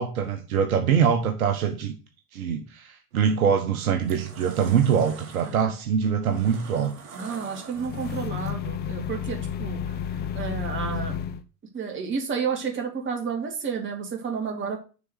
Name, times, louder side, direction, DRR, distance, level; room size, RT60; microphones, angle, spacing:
voice 1, 0.0-1.9 2.3-6.9, right 7 dB, 65° right, 5 dB, 1.4 m, -23 dB
sound 1, 3.1-3.4 3.8-8.5, right 5 dB, 45° right, 2.4 m, -45 dB
voice 2, 7.1-9.9 10.3-11.2 11.7-14.8, right 6 dB, 25° right, 2 dB, 2.5 m, -31 dB
sound 2, 7.8-11.4, left 9 dB, 20° left, 0.6 m, -31 dB
6.9 x 4.3 x 6.7 m, 0.34 s
figure-of-eight pair, 90°, 46 cm